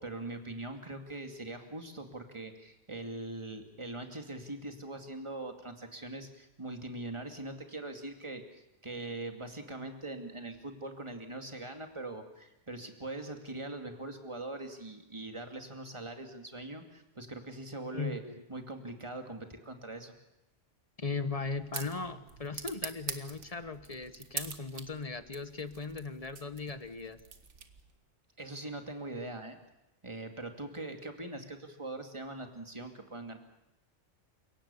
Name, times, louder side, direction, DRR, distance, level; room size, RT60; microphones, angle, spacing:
voice 1, 0.0-18.2 18.5-20.1 28.4-29.6 30.0-33.4, right 2 dB, 25° right, 4 dB, 2.5 m, -42 dB
voice 2, 17.9-18.4 21.0-27.2, left 4 dB, 30° left, 11 dB, 1.3 m, -38 dB
sound 1, 21.1-28.0, right 5 dB, 75° right, 1.8 m, -45 dB
29.5 x 17.5 x 7.1 m, 0.93 s
omnidirectional pair, 1.2 m